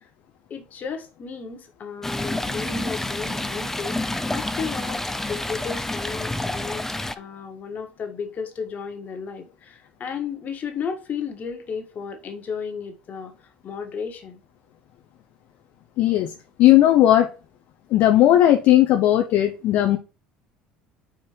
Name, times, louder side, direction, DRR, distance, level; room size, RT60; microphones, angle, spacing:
voice 1, 0.5-4.0 4.3-5.0 5.3-6.8 7.1-13.3 13.6-14.4, left 6 dB, 45° left, 1.6 m, -33 dB
Stream, 2.0-7.1, left 1 dB, 10° left, 0.6 m, -28 dB
voice 2, 16.0-16.3 16.6-17.3 17.9-20.0, left 13 dB, 60° left, 0.7 m, -16 dB
5.2 x 4.3 x 4.4 m
hypercardioid pair, 70°, 4 cm